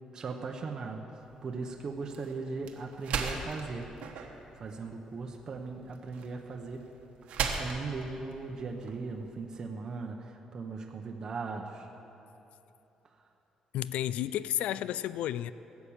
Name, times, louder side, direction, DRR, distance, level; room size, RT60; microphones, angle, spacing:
voice 1, 0.1-1.0 1.4-3.9 4.6-6.8 7.4-11.9, right 4 dB, 35° right, 2 dB, 0.8 m, -38 dB
sound 1, 1.2-9.5, right 6 dB, 80° right, 1.2 m, -39 dB
voice 2, 13.7-15.5, left 12 dB, 90° left, 16 dB, 0.3 m, -32 dB
16.0 x 8.3 x 7.2 m, 3.0 s
cardioid pair, 175°, 2 cm